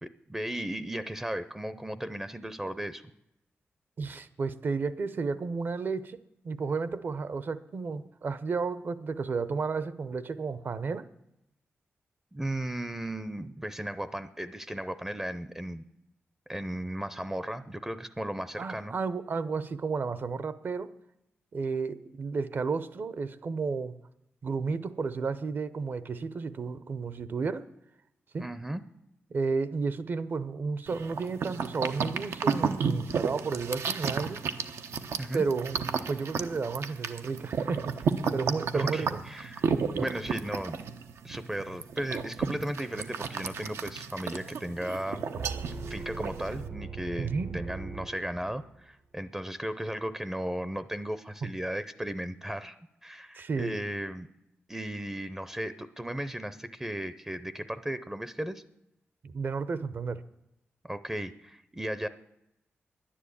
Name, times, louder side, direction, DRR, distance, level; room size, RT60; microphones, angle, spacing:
voice 1, 0.0-3.0 12.3-15.8 16.5-18.9 28.4-28.8 35.2-35.4 38.7-39.7 39.9-40.8 41.2-45.2 45.9-52.8 53.0-54.3 54.7-58.6 60.8-62.1, right 1 dB, 10° right, 13 dB, 0.5 m, -35 dB
voice 2, 4.0-11.1 18.6-20.9 21.5-24.0 24.4-27.7 28.3-28.5 29.3-34.4 35.3-38.0 38.3-39.2 47.2-47.6 51.4-51.5 53.3-53.8 59.2-60.2, right 4 dB, 50° right, 15 dB, 0.7 m, -32 dB
sound 1, 30.9-46.7, right 6 dB, 90° right, 0.9 m, -33 dB
sound 2, 45.3-48.8, right 5 dB, 70° right, 1.2 m, -40 dB
11.0 x 10.0 x 8.5 m, 0.86 s
wide cardioid pair, 130°, 4 cm